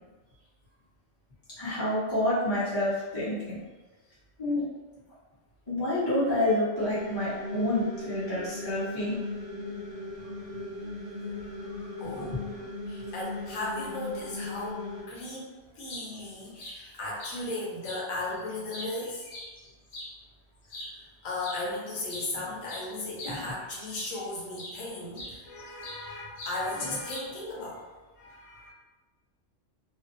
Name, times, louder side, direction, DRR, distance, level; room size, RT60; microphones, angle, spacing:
voice 1, 1.6-3.6 4.4-4.6 5.7-9.2 12.1-12.3, left 1 dB, 20° left, -12 dB, 0.9 m, -28 dB
sound 1, 6.8-15.0, left 2 dB, 50° right, 0.6 m, -38 dB
voice 2, 12.0-12.4 12.9-14.8 15.1-19.3 20.9-27.8 28.2-28.7, left 2 dB, 90° left, -4 dB, 1.0 m, -36 dB
sound 2, 15.7-16.1 16.6-16.8 17.2-17.4 17.8-18.0 18.5-20.1 20.6-20.9 21.4-21.6 21.9-24.2 24.6-24.8 25.2-26.1 26.4-26.6 27.1-27.5, left 1 dB, 60° left, 0.6 m, -42 dB
2.5 x 2.0 x 2.5 m, 1.2 s
omnidirectional pair, 1.3 m